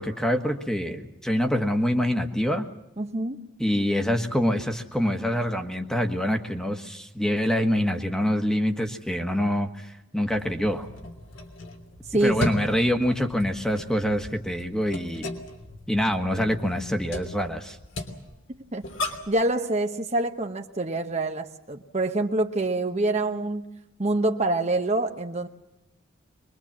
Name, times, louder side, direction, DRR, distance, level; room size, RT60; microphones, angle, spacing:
voice 1, 0.0-2.7 3.6-10.9 12.2-15.3 15.9-17.8, equal, 5° left, 6 dB, 1.4 m, -25 dB
voice 2, 3.0-3.5 12.1-12.5 18.7-23.7 24.0-25.5, right 2 dB, 35° right, 5 dB, 1.0 m, -26 dB
sound 1, 10.3-19.4, left 2 dB, 80° left, 3.2 m, -37 dB
23.5 x 22.0 x 7.4 m, 0.90 s
head